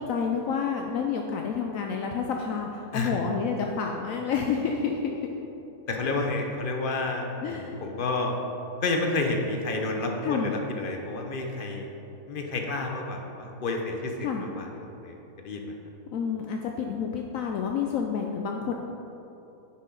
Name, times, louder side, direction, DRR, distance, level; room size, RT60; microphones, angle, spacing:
voice 1, 0.0-5.3 7.4-7.8 10.2-10.5 14.2-14.4 16.1-18.7, left 6 dB, 70° left, 2 dB, 0.9 m, -29 dB
voice 2, 5.9-8.3 8.8-11.9 12.3-14.1 14.4-15.2 15.4-15.6, left 2 dB, 45° left, 2 dB, 0.9 m, -30 dB
9.6 x 6.3 x 3.9 m, 2.9 s
omnidirectional pair, 1.6 m